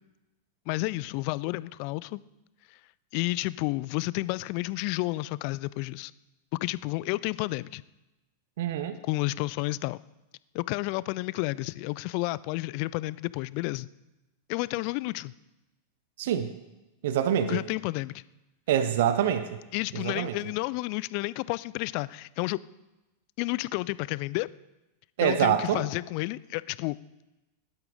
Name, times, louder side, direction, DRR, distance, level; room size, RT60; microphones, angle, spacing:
voice 1, 0.7-2.2 3.1-6.1 6.6-7.8 9.0-10.0 10.5-13.9 14.5-15.3 17.5-18.1 19.7-22.6 23.4-24.5 25.2-27.0, left 21 dB, 45° left, 20 dB, 0.3 m, -31 dB
voice 2, 8.6-9.0 16.2-16.5 17.0-17.6 18.7-19.6 19.9-20.4 25.2-25.8, right 9 dB, 55° right, 11 dB, 0.7 m, -25 dB
18.0 x 11.5 x 3.8 m, 1.0 s
figure-of-eight pair, 90°, 0 cm